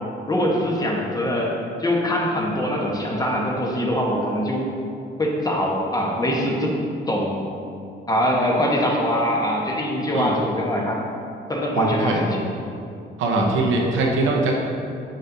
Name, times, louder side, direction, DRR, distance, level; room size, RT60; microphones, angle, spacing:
voice 1, 0.3-1.5 1.8-4.6 5.2-6.8 7.1-7.4 8.1-11.0 11.5-12.4 13.3-13.5, equal, 20° left, -2 dB, 1.1 m, -23 dB
voice 2, 11.7-12.2 13.2-14.5, right 3 dB, 80° right, -1 dB, 0.8 m, -22 dB
7.4 x 5.2 x 2.7 m, 2.6 s
cardioid pair, 90°, 20 cm